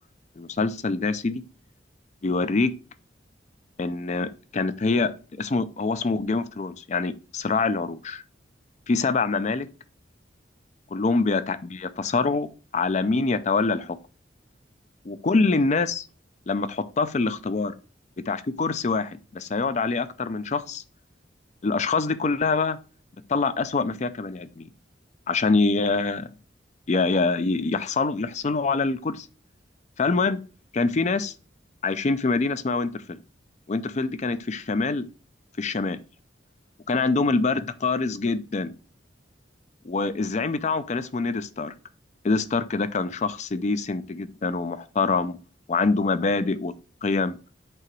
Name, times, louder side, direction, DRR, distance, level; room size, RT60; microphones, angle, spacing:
voice 1, 0.4-1.4 2.2-2.7 3.8-8.2 8.9-9.7 10.9-14.0 15.0-16.1 16.5-17.7 18.3-20.8 21.6-22.8 23.3-24.5 25.3-26.3 26.9-29.3 30.0-30.4 30.7-31.3 31.8-33.2 33.7-35.1 35.6-36.0 36.9-38.7 39.8-41.7 42.2-45.4 45.7-46.7 47.0-47.4, left 3 dB, 40° left, 0.5 m, -25 dB
7.7 x 2.9 x 4.5 m
head